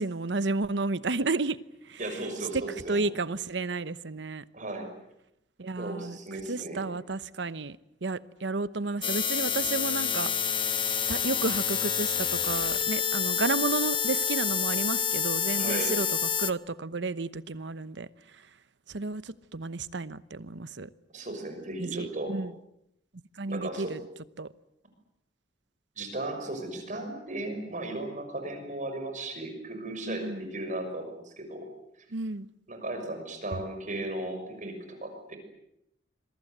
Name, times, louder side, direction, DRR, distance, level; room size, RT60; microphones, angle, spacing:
voice 1, 0.0-1.6 1.9-2.0 2.5-2.6 2.9-4.4 5.6-6.2 6.5-7.8 8.0-10.3 11.1-16.1 16.4-18.1 18.9-20.9 21.8-22.5 23.4-24.0 24.4-24.5 30.1-30.5 32.1-32.5, right 3 dB, 70° right, 0.9 m, -32 dB
voice 2, 2.0-3.0 4.5-4.9 5.8-6.9 15.5-15.9 21.1-22.3 23.5-23.9 26.0-31.7 32.7-35.4, right 2 dB, 45° right, 6.2 m, -36 dB
sound 1, 9.0-16.5, left 7 dB, 25° left, 1.1 m, -28 dB
27.0 x 23.0 x 8.0 m
head